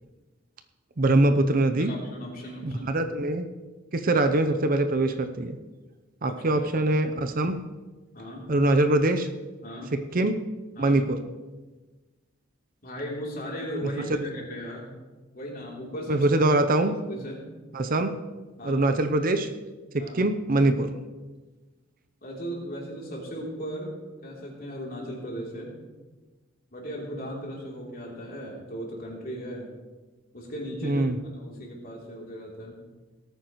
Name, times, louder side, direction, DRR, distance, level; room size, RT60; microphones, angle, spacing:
voice 1, 1.0-1.9 2.6-3.5 3.9-5.6 6.2-7.6 8.5-9.3 10.1-10.3 10.8-11.2 13.8-13.9 16.1-16.9 17.7-18.1 18.6-19.5 20.1-20.9 30.8-31.2, right 2 dB, 45° right, 8 dB, 0.7 m, -23 dB
voice 2, 1.8-2.9 6.3-6.7 8.1-8.5 9.6-9.9 10.8-11.0 12.8-14.9 15.3-16.3 17.0-17.4 18.6-18.8 20.0-20.2 22.2-23.9 24.2-25.7 26.7-29.7 30.3-31.0 31.3-32.8, equal, 50° left, -3 dB, 3.1 m, -37 dB
18.0 x 9.1 x 3.1 m, 1.2 s
head